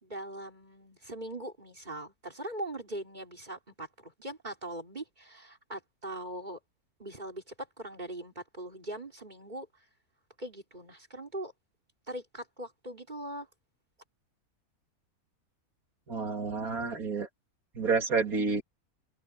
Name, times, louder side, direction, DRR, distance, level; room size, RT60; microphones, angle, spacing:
voice 1, 0.0-6.6 7.0-9.7 10.4-11.5 12.1-13.5, right 1 dB, 30° right, 3.9 m, -41 dB
voice 2, 16.1-17.3 17.8-18.6, right 4 dB, 75° right, 3.0 m, -29 dB
open air
omnidirectional pair, 1.5 m